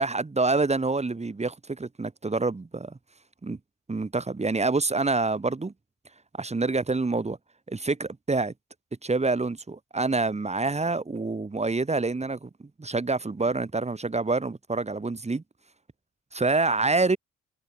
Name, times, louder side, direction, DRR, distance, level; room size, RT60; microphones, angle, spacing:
voice 1, 0.0-2.9 3.4-3.6 3.9-5.7 6.4-7.4 7.7-8.5 9.0-12.5 12.8-15.4 16.3-17.2, right 3 dB, 20° right, 2.8 m, -26 dB
cardioid pair, 120°, 30 cm